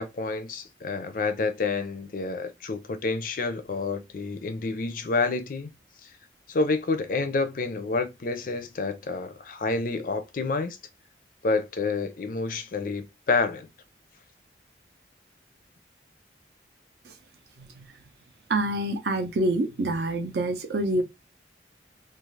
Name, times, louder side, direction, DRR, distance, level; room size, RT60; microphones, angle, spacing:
voice 1, 0.0-5.7 6.5-10.8 11.4-13.7, left 3 dB, 45° left, 0.4 m, -28 dB
voice 2, 18.5-21.0, right 1 dB, 65° right, 0.5 m, -27 dB
2.4 x 2.4 x 3.1 m
head